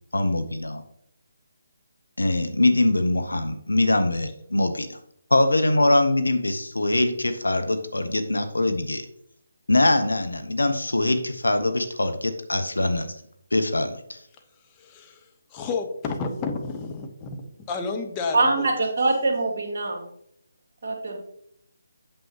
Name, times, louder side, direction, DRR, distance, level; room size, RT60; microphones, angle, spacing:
voice 1, 0.1-0.8 2.2-4.9 5.3-9.0 9.7-13.2 13.5-14.2, left 2 dB, 75° left, 8 dB, 0.8 m, -23 dB
voice 2, 14.8-15.2 15.5-17.4 17.7-18.7, left 4 dB, 20° left, 4 dB, 1.0 m, -31 dB
voice 3, 18.3-20.0 20.8-21.2, right 3 dB, 50° right, 1 dB, 2.1 m, -23 dB
8.6 x 7.1 x 2.9 m, 0.73 s
figure-of-eight pair, 145°, 0 cm